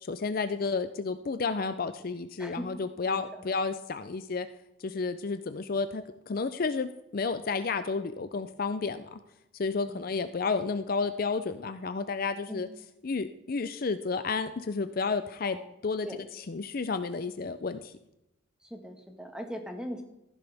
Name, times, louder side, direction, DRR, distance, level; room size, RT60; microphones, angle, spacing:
voice 1, 0.0-4.5 4.8-9.2 9.6-12.7 13.0-15.6 15.8-16.1 16.3-17.9, left 4 dB, 45° left, 11 dB, 0.5 m, -31 dB
voice 2, 2.4-3.4 9.8-10.1 12.5-12.7 15.4-15.7 16.0-16.2 18.6-20.0, equal, 5° right, 4 dB, 1.4 m, -41 dB
15.0 x 11.0 x 3.5 m, 0.90 s
head